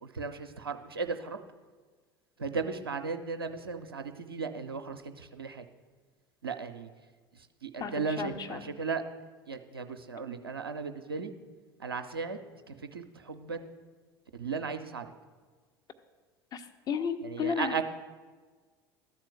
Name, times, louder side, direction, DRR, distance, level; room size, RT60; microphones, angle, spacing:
voice 1, 0.0-1.4 2.4-5.6 6.4-6.9 7.3-9.0 9.5-11.3 11.8-12.4 12.7-13.7 14.3-15.1 17.2-17.8, right 5 dB, 80° right, 7 dB, 0.5 m, -36 dB
voice 2, 7.8-8.6 16.5-17.8, left 6 dB, 30° left, 7 dB, 0.8 m, -34 dB
12.5 x 4.3 x 7.7 m, 1.4 s
figure-of-eight pair, 70°, 12 cm